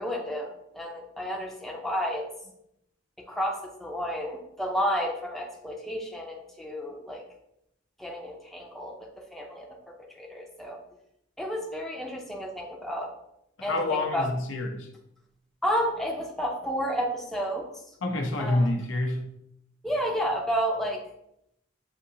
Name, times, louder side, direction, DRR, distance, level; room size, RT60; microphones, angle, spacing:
voice 1, 0.0-2.3 3.3-7.2 8.0-9.8 10.1-10.8 11.4-13.1 13.6-14.3 15.6-17.7 18.4-18.7 19.8-21.0, equal, ahead, 0 dB, 0.5 m, -31 dB
voice 2, 13.6-14.9 18.0-19.3, left 2 dB, 85° left, 3 dB, 0.7 m, -27 dB
6.7 x 2.7 x 2.7 m, 0.79 s
head